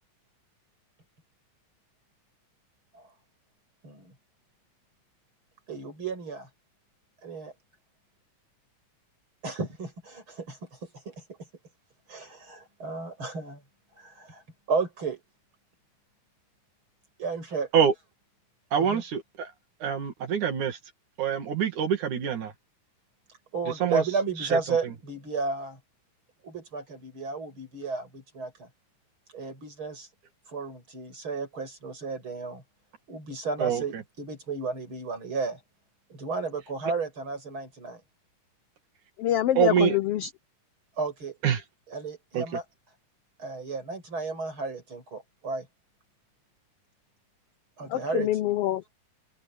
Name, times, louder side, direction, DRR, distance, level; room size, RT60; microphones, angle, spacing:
voice 1, 5.7-6.5 7.2-7.5 9.4-11.2 12.1-13.6 14.0-14.4 14.7-15.2 17.2-17.7 18.8-19.0 23.5-25.8 26.4-28.7 29.3-30.1 30.5-32.6 33.1-35.6 36.1-38.0 41.0-41.4 41.9-42.6 43.4-45.7 47.8-48.3, right 4 dB, 40° right, 7.7 m, -33 dB
voice 2, 18.7-19.5 19.8-20.8 21.2-22.5 23.8-24.0 24.5-24.6 33.6-34.0 39.6-40.0 41.4-41.6 42.3-42.4, right 8 dB, 90° right, 3.9 m, -25 dB
voice 3, 39.2-40.3 47.9-48.9, left 13 dB, 80° left, 1.3 m, -26 dB
omnidirectional pair, 3.4 m